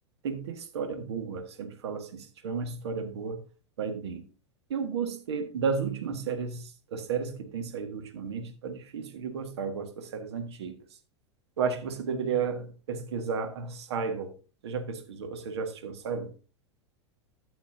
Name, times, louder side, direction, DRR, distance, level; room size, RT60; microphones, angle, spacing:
voice 1, 0.2-3.4 3.8-4.2 4.7-10.8 11.6-14.3 14.6-16.3, right 5 dB, 65° right, 1.7 m, -33 dB
12.5 x 7.0 x 2.8 m
figure-of-eight pair, 90°, 15 cm